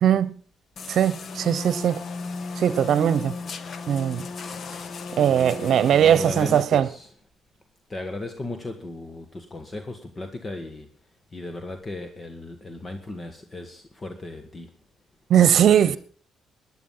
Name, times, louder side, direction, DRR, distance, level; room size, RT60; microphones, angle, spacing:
voice 1, 0.0-0.3 0.9-2.0 2.6-3.3 3.9-4.3 5.2-6.9 15.3-16.0, right 9 dB, 65° right, 1.0 m, -19 dB
sound 1, 0.8-6.6, left 4 dB, 55° left, 1.2 m, -35 dB
voice 2, 5.3-7.1 7.9-14.7 15.4-16.0, left 2 dB, 30° left, 1.7 m, -36 dB
17.0 x 11.0 x 5.7 m
cardioid pair, 90°, 0 cm